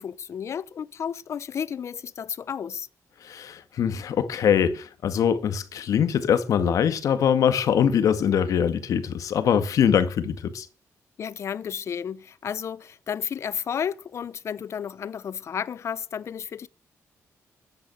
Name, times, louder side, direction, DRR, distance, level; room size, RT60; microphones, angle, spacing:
voice 1, 0.0-2.9 11.2-16.7, left 8 dB, 55° left, 0.8 m, -32 dB
voice 2, 3.2-10.7, left 8 dB, 75° left, 1.8 m, -23 dB
14.0 x 10.0 x 7.8 m
cardioid pair, 115°, 6 cm